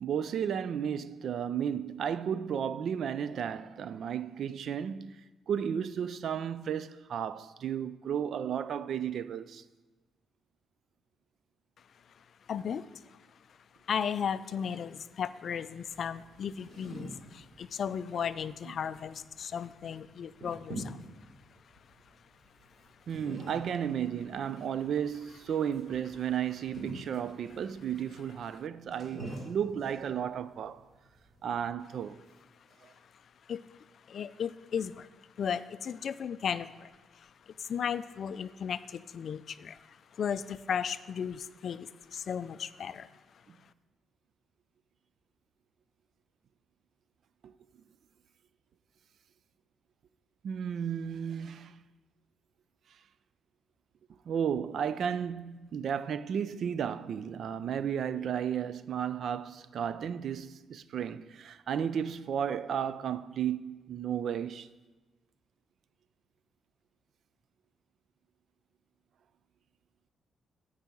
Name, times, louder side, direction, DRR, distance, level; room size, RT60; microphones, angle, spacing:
voice 1, 0.0-5.2 5.5-9.6 23.1-30.8 31.4-32.2 32.8-32.9 47.4-47.5 50.4-51.8 54.3-64.7, right 8 dB, 60° right, 0.4 m, -33 dB
voice 2, 12.1-13.2 13.5-13.6 13.8-21.3 21.9-22.0 32.8-43.1, left 7 dB, 50° left, 0.3 m, -36 dB
sound 1, 15.8-31.7, right 1 dB, 35° right, 3.1 m, -48 dB
9.0 x 4.8 x 7.6 m
cardioid pair, 140°, 0 cm